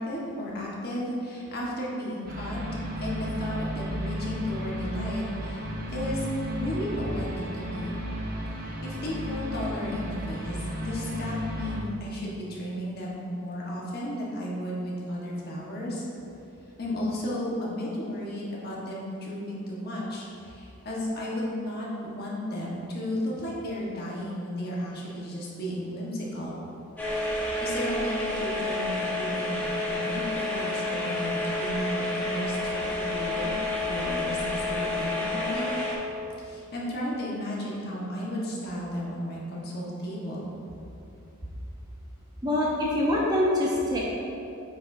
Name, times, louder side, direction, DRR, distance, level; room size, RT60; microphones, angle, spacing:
voice 1, 0.0-2.6 3.0-5.6 5.9-7.3 7.5-7.9 8.6-16.1 16.8-26.6 27.4-33.5 33.7-35.7 36.4-40.5, equal, 45° left, -5 dB, 1.4 m, -34 dB
sound 1, 2.3-11.8, equal, 40° right, 1.0 m, -33 dB
sound 2, 27.0-35.9, left 2 dB, 10° left, 1.0 m, -30 dB
voice 2, 42.4-44.0, left 1 dB, 15° right, -4 dB, 0.9 m, -24 dB
8.8 x 6.4 x 2.7 m, 2.7 s
head